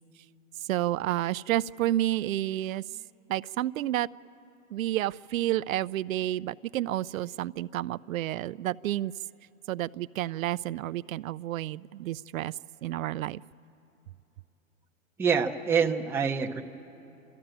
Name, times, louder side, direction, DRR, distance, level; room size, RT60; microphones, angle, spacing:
voice 1, 0.6-2.8 3.3-4.1 4.7-9.1 9.7-13.4, right 14 dB, 80° right, 15 dB, 0.5 m, -30 dB
voice 2, 15.2-16.6, right 6 dB, 5° right, 1 dB, 0.7 m, -26 dB
27.5 x 14.0 x 8.9 m, 2.9 s
hypercardioid pair, 140°, 40 cm